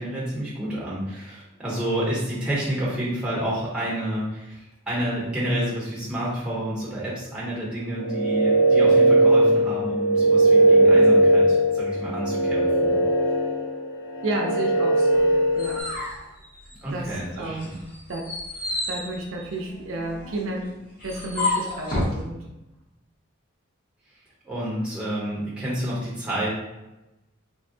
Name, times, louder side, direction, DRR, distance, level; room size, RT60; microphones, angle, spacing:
voice 1, 0.0-13.0 16.8-17.7 24.4-26.5, right 1 dB, 5° right, -7 dB, 0.8 m, -29 dB
sound 1, 7.9-15.8, right 2 dB, 85° left, 0.9 m, -19 dB
voice 2, 14.2-15.9 16.9-17.8 18.1-18.3 18.9-20.7 21.0-22.5, right 2 dB, 65° right, 1 dB, 0.4 m, -32 dB
sound 2, 15.1-17.1 17.5-22.2, left 2 dB, 40° left, 0.8 m, -31 dB
3.4 x 2.1 x 2.6 m, 0.96 s
head